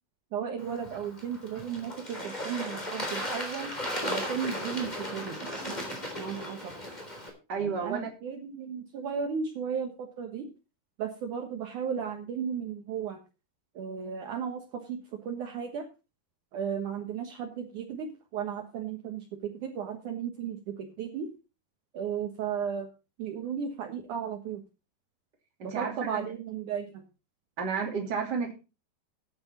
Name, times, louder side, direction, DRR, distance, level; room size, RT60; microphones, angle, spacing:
voice 1, 0.3-3.7 4.0-5.4 6.2-6.7 7.6-10.5 11.0-13.2 13.8-15.8 16.5-21.3 21.9-22.9 23.2-24.6 25.6-27.0, right 7 dB, 65° right, 3 dB, 2.6 m, -35 dB
Bird / Water, 0.6-7.3, left 1 dB, 10° left, 3.4 m, -36 dB
voice 2, 7.5-8.1 25.7-26.2 27.6-28.5, right 5 dB, 30° right, 2 dB, 2.8 m, -31 dB
13.0 x 9.8 x 4.2 m, 0.30 s
omnidirectional pair, 4.2 m